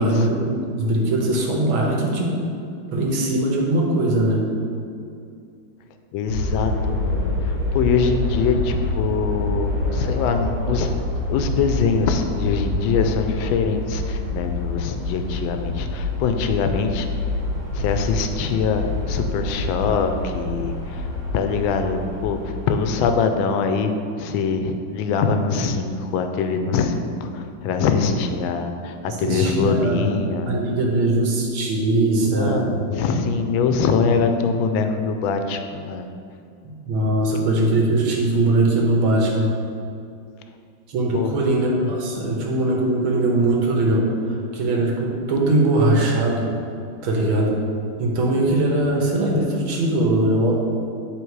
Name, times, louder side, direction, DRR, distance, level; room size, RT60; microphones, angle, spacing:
voice 1, 0.0-2.4 2.9-4.5 29.1-30.1 30.5-32.7 36.6-39.5 40.9-46.5 47.0-47.6 48.0-50.6, right 2 dB, 85° right, -1 dB, 2.0 m, -21 dB
voice 2, 6.1-11.0 11.3-17.1 17.7-21.1 21.3-30.5 32.2-36.1 41.1-41.3, left 5 dB, 80° left, 6 dB, 1.4 m, -23 dB
sound 1, 6.3-23.1, left 2 dB, 70° right, 2.8 m, -26 dB
10.5 x 3.6 x 4.7 m, 2.4 s
omnidirectional pair, 2.2 m